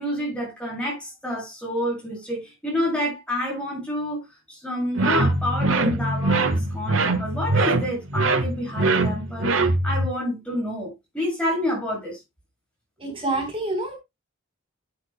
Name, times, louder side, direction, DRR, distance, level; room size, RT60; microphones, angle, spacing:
voice 1, 0.0-9.5 9.8-12.2, equal, 5° left, 7.6 m, -28 dB
sound 1, 5.0-10.1, right 2 dB, 85° right, 1.4 m, -22 dB
voice 2, 13.0-14.0, right 2 dB, 25° right, 4.1 m, -27 dB
12.0 x 11.0 x 2.2 m
head